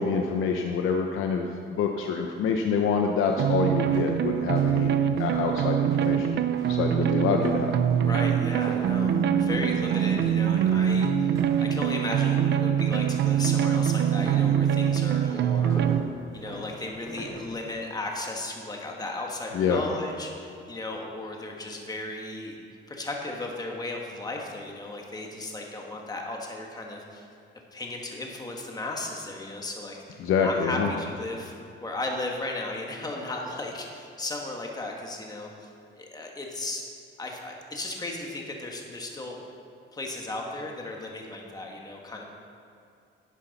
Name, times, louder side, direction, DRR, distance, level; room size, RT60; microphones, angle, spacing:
voice 1, 0.0-4.9 5.2-7.7 19.5-19.8 30.2-30.9, left 5 dB, 80° left, 3 dB, 0.7 m, -26 dB
sound 1, 2.8-2.9 3.3-11.7 12.0-12.4 12.8-17.5, right 1 dB, 15° right, 2.7 m, -41 dB
sound 2, 3.4-16.0, right 9 dB, 60° right, 0.5 m, -24 dB
voice 2, 8.0-15.8 16.3-22.6 22.9-27.3 27.7-31.5 31.8-36.8 37.2-39.4 39.9-42.2, left 2 dB, 20° left, 0 dB, 1.4 m, -35 dB
11.0 x 10.0 x 4.1 m, 2.5 s
cardioid pair, 145°, 21 cm